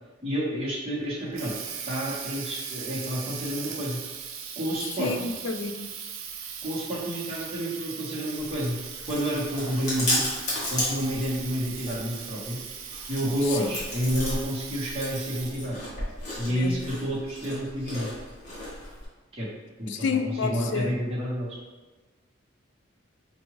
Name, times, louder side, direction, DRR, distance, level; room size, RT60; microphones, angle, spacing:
voice 1, 0.2-1.5 1.9-4.0 4.6-5.3 6.6-8.8 9.1-10.2 10.7-12.6 13.1-15.8 16.4-18.1 19.3-19.5 19.8-21.6, equal, 30° right, -7 dB, 1.1 m, -29 dB
Water tap faucet, 1.0-15.7, right 7 dB, 85° right, 0.4 m, -39 dB
voice 2, 5.0-5.9 13.6-13.7 16.5-16.8 19.9-20.9, left 5 dB, 60° left, 6 dB, 0.3 m, -30 dB
Chewing mastication, 8.4-19.1, left 1 dB, 35° left, 1.2 m, -34 dB
4.7 x 2.6 x 3.0 m, 1.2 s
head